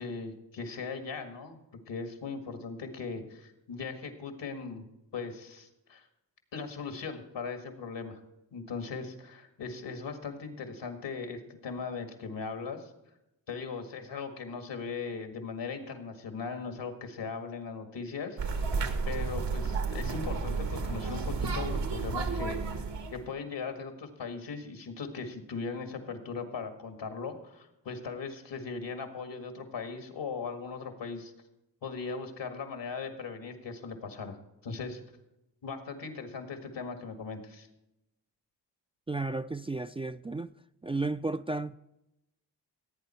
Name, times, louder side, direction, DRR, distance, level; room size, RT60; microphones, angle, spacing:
voice 1, 0.0-1.6 1.9-4.9 5.1-6.1 6.5-8.2 8.5-12.9 13.5-18.6 19.1-31.3 31.8-34.4 34.6-35.0 35.6-37.7, left 5 dB, 80° left, 1.9 m, -39 dB
sound 1, 18.4-23.2, right 4 dB, 75° right, 1.5 m, -32 dB
voice 2, 39.1-40.5 40.8-41.7, right 3 dB, 15° right, 0.3 m, -33 dB
16.0 x 8.7 x 4.4 m
cardioid pair, 50°, 43 cm